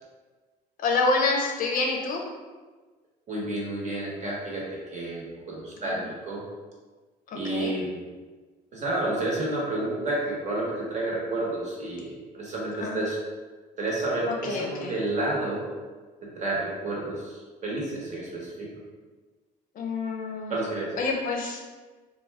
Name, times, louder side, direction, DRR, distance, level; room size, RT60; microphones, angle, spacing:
voice 1, 0.8-2.2 5.9-6.1 7.4-7.7 12.8-13.1 14.3-15.0 19.8-20.6 21.0-21.6, left 3 dB, 55° left, 0 dB, 0.5 m, -27 dB
voice 2, 3.3-4.7 4.9-6.4 7.3-8.0 8.7-13.2 13.8-15.6 16.2-17.2 17.6-18.7 20.5-20.9, right 2 dB, 45° right, -4 dB, 0.9 m, -30 dB
2.4 x 2.2 x 3.3 m, 1.4 s
cardioid pair, 110°, 17 cm